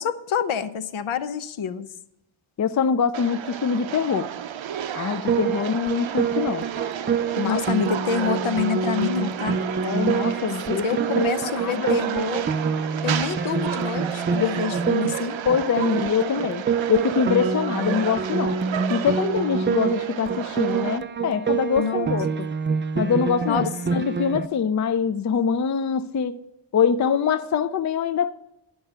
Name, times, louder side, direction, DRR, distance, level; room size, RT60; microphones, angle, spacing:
voice 1, 0.0-1.9 7.4-9.6 10.8-12.5 13.0-15.4 21.8-22.2 23.5-24.1, left 6 dB, 75° left, 0.8 m, -27 dB
voice 2, 2.6-4.3 4.9-6.6 7.4-7.6 9.8-10.9 11.2-12.0 14.4-14.5 15.5-16.6 16.9-18.6 18.9-22.3 23.0-26.4 26.7-28.3, left 7 dB, 40° left, 0.5 m, -24 dB
sound 1, 3.1-21.0, right 9 dB, 70° right, 0.7 m, -32 dB
Piano, 5.3-24.5, right 6 dB, 25° right, 0.4 m, -27 dB
11.5 x 5.6 x 8.0 m
wide cardioid pair, 160°, 49 cm